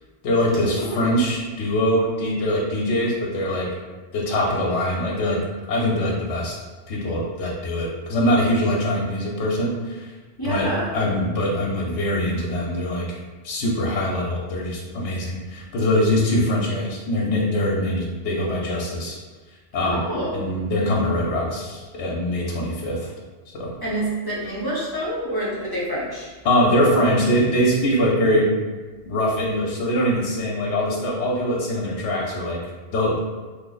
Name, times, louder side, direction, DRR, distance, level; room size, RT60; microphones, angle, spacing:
voice 1, 0.2-3.7 4.1-5.4 5.7-6.5 6.9-10.1 10.4-13.2 13.4-19.2 19.7-20.1 20.3-23.1 23.5-23.7 26.4-28.5 29.1-32.6 32.9-33.2, left 1 dB, 80° left, -2 dB, 0.9 m, -23 dB
voice 2, 10.4-11.0 19.8-20.5 23.8-26.3, right 1 dB, 25° left, -7 dB, 0.5 m, -27 dB
3.0 x 2.0 x 3.8 m, 1.3 s
omnidirectional pair, 1.1 m